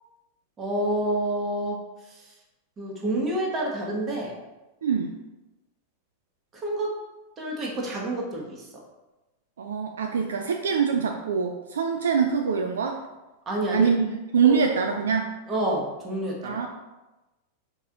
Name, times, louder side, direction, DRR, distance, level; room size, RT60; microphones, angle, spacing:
voice 1, 0.6-1.8 2.0-2.3 2.8-4.3 6.5-6.9 7.4-8.7 13.5-13.9 14.4-14.6 15.5-16.6, right 1 dB, 25° right, -1 dB, 1.1 m, -28 dB
voice 2, 4.8-5.1 9.6-13.0 13.7-15.3 16.4-16.7, right 6 dB, 65° right, 3 dB, 0.3 m, -24 dB
4.5 x 3.0 x 3.6 m, 1.1 s
figure-of-eight pair, 90°, 0 cm